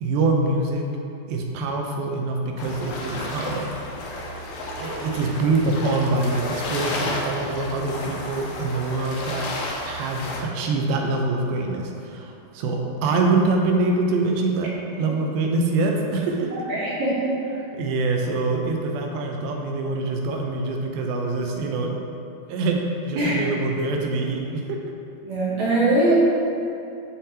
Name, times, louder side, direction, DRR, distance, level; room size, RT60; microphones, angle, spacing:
voice 1, 0.0-0.8 1.3-3.7 4.8-9.5 9.9-16.5 17.7-22.0 22.5-24.8, right 3 dB, 90° right, 1 dB, 2.6 m, -24 dB
sound 1, 2.6-10.4, left 1 dB, 75° left, 2.1 m, -32 dB
voice 2, 16.5-17.3 23.2-23.4 25.2-26.1, right 2 dB, 65° right, -8 dB, 1.9 m, -22 dB
10.0 x 3.7 x 2.7 m, 2.7 s
omnidirectional pair, 4.2 m